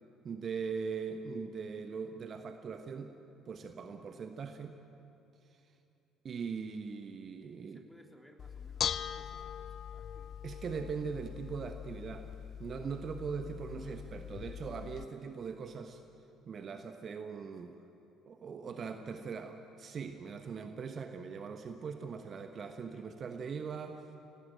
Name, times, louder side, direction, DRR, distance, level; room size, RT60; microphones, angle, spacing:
voice 1, 0.2-3.2 3.5-4.8 5.5-5.6 6.2-7.9 10.4-12.3 12.6-16.0 16.5-17.8 18.3-24.2, right 5 dB, 40° right, 7 dB, 1.2 m, -41 dB
voice 2, 6.6-7.0 7.3-10.3 13.7-14.4 18.6-19.3 22.7-23.1, equal, 5° left, 2 dB, 3.3 m, -60 dB
Bell / Dishes pots and pans, 8.4-15.0, left 9 dB, 45° left, 0.6 m, -41 dB
26.0 x 18.0 x 9.1 m, 2.8 s
figure-of-eight pair, 55°, 0 cm